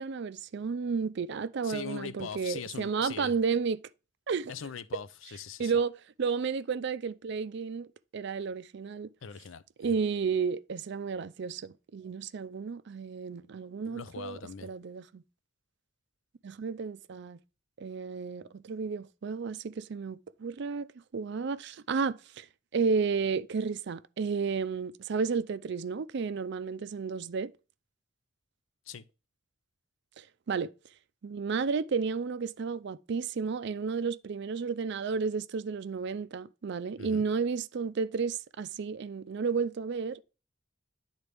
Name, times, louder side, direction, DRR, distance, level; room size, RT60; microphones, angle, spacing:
voice 1, 0.0-3.8 4.3-4.5 5.6-5.9 6.2-7.9 8.1-9.1 9.8-15.2 16.4-17.4 17.8-20.9 21.1-22.5 22.7-27.5 30.2-30.7 31.2-40.2, right 5 dB, 60° right, 0.4 m, -32 dB
voice 2, 1.6-3.3 4.5-5.7 9.2-10.0 13.8-14.7 28.9-29.0 37.0-37.2, left 6 dB, 75° left, 0.5 m, -41 dB
10.5 x 4.0 x 3.4 m
head